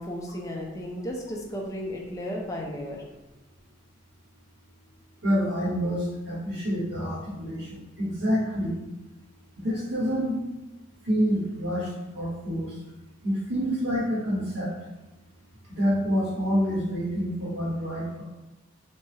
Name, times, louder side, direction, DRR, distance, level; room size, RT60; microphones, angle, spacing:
voice 1, 0.0-3.0, equal, 15° left, -2 dB, 0.4 m, -34 dB
voice 2, 5.2-7.7 8.0-8.7 9.6-10.4 11.0-12.7 13.2-14.7 15.7-18.2, equal, 65° right, -9 dB, 1.0 m, -27 dB
2.8 x 2.2 x 3.1 m, 1.1 s
head